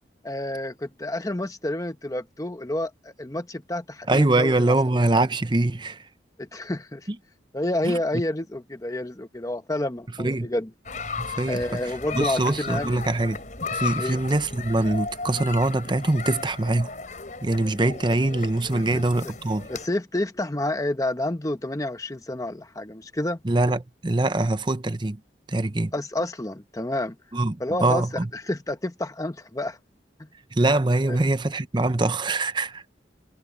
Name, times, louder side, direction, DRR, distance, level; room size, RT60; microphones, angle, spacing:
voice 1, 0.2-4.8 6.4-7.1 7.5-10.7 11.5-13.0 14.0-14.2 18.7-19.3 19.7-23.4 25.9-27.2 27.6-28.1 28.3-29.8 30.2-30.3 31.0-31.2, left 1 dB, 20° left, 0.9 m, -29 dB
voice 2, 4.1-6.0 7.1-7.2 7.8-8.0 10.2-10.5 11.2-11.8 12.1-13.4 13.7-16.9 17.4-19.7 23.4-25.2 25.5-25.9 27.3-28.3 30.5-32.8, right 2 dB, 25° right, 0.7 m, -23 dB
sound 1, 10.8-19.9, left 4 dB, 45° left, 5.5 m, -35 dB
head